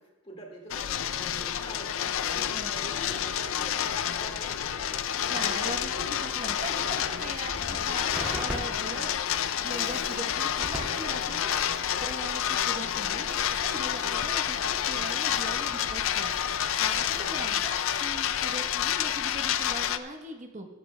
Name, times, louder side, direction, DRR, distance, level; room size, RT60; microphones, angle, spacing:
voice 1, 0.2-4.8 17.0-17.4, equal, 25° left, 0 dB, 1.9 m, -45 dB
sound 1, 0.7-20.0, left 9 dB, 75° left, 0.4 m, -29 dB
voice 2, 2.4-2.7 5.3-9.1 9.6-11.5 12.0-16.3 16.8-20.7, right 1 dB, 35° right, 3 dB, 1.0 m, -40 dB
Crackle, 7.5-17.3, equal, 5° right, 2.1 m, -42 dB
15.0 x 13.0 x 2.2 m, 1.2 s
head